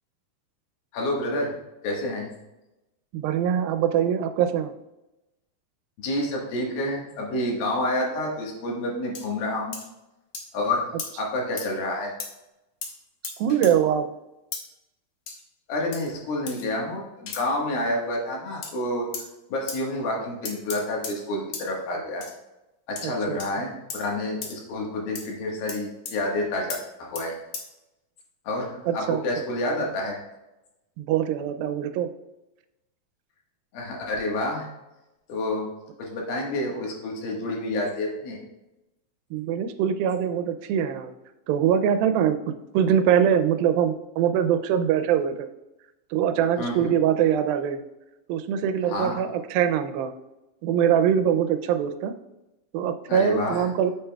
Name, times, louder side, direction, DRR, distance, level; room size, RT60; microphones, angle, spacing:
voice 1, 0.9-1.6 1.8-2.3 6.0-9.8 10.5-10.9 11.2-12.1 15.7-19.1 19.5-22.3 22.9-26.7 27.0-27.4 28.4-30.2 33.7-34.7 35.3-35.7 36.0-38.4 46.6-46.9 48.9-49.1 53.1-53.7, left 1 dB, 85° left, -1 dB, 3.3 m, -28 dB
voice 2, 3.1-4.7 13.4-14.1 23.0-23.4 28.9-29.2 31.0-32.1 39.3-41.1 41.5-42.4 42.7-45.5 46.1-47.8 48.3-50.1 50.6-52.1 52.7-53.9, right 9 dB, 90° right, 9 dB, 2.4 m, -23 dB
sound 1, 9.1-9.3 9.7-9.9 10.3-10.5 11.0-11.1 11.6-11.7 12.2-12.3 12.8-12.9 13.2-13.7 14.5-14.6 15.3-15.4 15.9-16.1 16.5-16.7 17.3-17.4 18.6-18.7 19.1-19.3 19.7-19.8 20.5-21.2 21.5-21.7 22.2-22.4 23.0-23.1 23.4-23.5 23.9-24.0 24.4-24.6 25.2-25.3 25.7-25.8 26.1-26.2 26.7-26.8 27.2-27.3 27.5-27.6, left 5 dB, 65° left, 1.6 m, -35 dB
8.8 x 7.3 x 2.3 m, 0.97 s
omnidirectional pair, 4.1 m